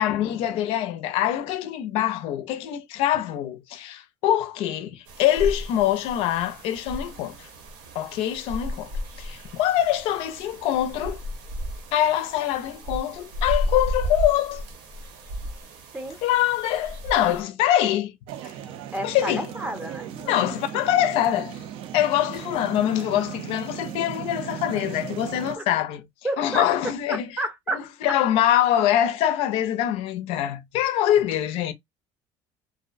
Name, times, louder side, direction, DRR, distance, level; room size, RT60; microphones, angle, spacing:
voice 1, 0.0-7.3 7.9-8.9 9.2-11.2 11.9-14.6 16.2-18.1 19.0-19.5 20.3-21.6 21.9-26.1 26.4-27.3 27.7-31.7, left 12 dB, 70° left, 0.5 m, -24 dB
sound 1, 5.1-17.4, equal, 85° right, 0.8 m, -33 dB
sound 2, 18.3-25.5, right 10 dB, 60° right, 0.4 m, -37 dB
voice 2, 18.9-20.6 25.6-25.7 26.2-26.7 27.1-27.8, right 1 dB, 15° right, 0.6 m, -31 dB
2.5 x 2.1 x 2.4 m
cardioid pair, 120°, 10 cm